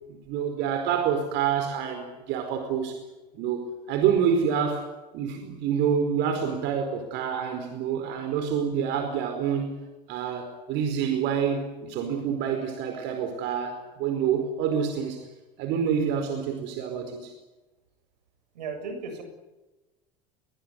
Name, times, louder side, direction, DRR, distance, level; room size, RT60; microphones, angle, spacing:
voice 1, 0.1-2.9 3.3-4.8 5.1-9.7 10.1-15.2 15.6-17.3, right 7 dB, 60° right, 6 dB, 4.8 m, -27 dB
voice 2, 18.5-19.2, right 4 dB, 80° right, 7 dB, 7.1 m, -35 dB
22.5 x 20.0 x 9.7 m, 1.1 s
hypercardioid pair, 85°, 21 cm